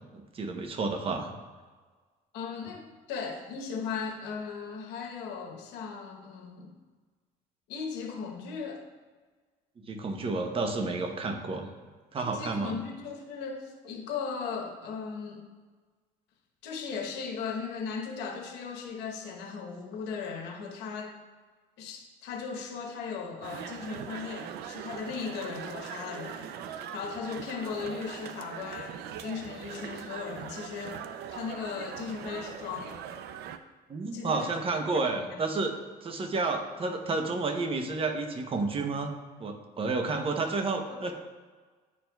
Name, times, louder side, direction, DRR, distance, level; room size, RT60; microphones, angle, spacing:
voice 1, 0.0-1.3 9.9-11.7 12.1-12.8 33.9-35.7 36.0-39.1 39.4-41.1, right 3 dB, 35° right, 4 dB, 0.8 m, -31 dB
voice 2, 2.3-6.8 7.7-8.8 12.2-15.5 16.6-21.2 21.8-26.5 26.9-33.0 34.1-35.2 36.4-36.5 40.9-41.0, left 5 dB, 90° left, 1 dB, 1.0 m, -37 dB
sound 1, 23.4-33.6, right 8 dB, 75° right, 0.4 m, -41 dB
9.9 x 4.4 x 2.3 m, 1.4 s
cardioid pair, 110°, 17 cm